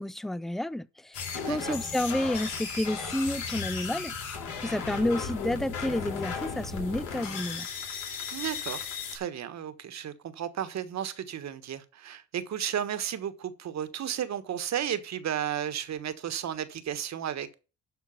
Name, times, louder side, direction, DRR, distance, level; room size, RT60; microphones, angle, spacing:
voice 1, 0.0-1.2 1.5-4.1 4.6-7.7, left 1 dB, ahead, 0.4 m, -30 dB
sound 1, 1.1-9.2, left 6 dB, 90° left, 3.7 m, -35 dB
voice 2, 1.3-1.8 8.3-17.5, right 9 dB, 60° right, 1.4 m, -34 dB
12.0 x 4.5 x 7.0 m
cardioid pair, 90°, 30 cm